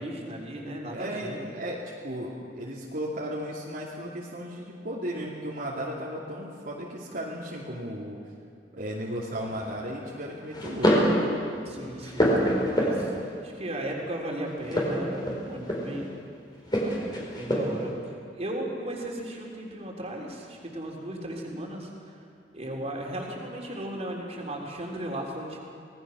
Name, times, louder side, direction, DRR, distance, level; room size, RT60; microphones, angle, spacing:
voice 1, 0.0-1.4 11.7-13.1 13.4-16.1 17.3-22.1 22.5-25.6, right 1 dB, 40° right, -1 dB, 3.6 m, -36 dB
voice 2, 0.9-8.2 8.7-11.1, equal, 55° right, -5 dB, 2.8 m, -35 dB
sound 1, 9.3-9.7 10.5-11.2 11.6-13.3 14.6-16.0 16.7-17.9, equal, 25° left, 4.4 m, -26 dB
26.0 x 19.0 x 6.3 m, 2.3 s
head